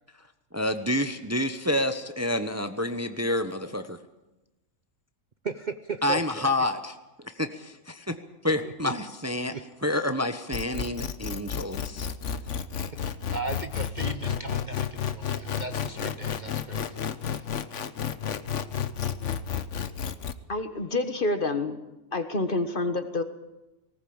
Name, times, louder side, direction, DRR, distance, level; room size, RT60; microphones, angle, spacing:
voice 1, 0.5-4.0 6.0-7.0 7.2-8.1 8.4-9.5 9.8-12.1, left 1 dB, 10° right, 8 dB, 1.0 m, -28 dB
voice 2, 5.4-6.5 8.6-8.9 9.5-9.6 13.3-17.0 17.4-17.5, right 4 dB, 40° right, 9 dB, 0.9 m, -37 dB
sound 1, 10.5-20.3, left 8 dB, 65° left, 1.3 m, -31 dB
voice 3, 20.5-21.8 22.1-23.2, left 2 dB, 40° left, 9 dB, 1.6 m, -28 dB
19.5 x 18.5 x 8.8 m, 1.0 s
omnidirectional pair, 1.4 m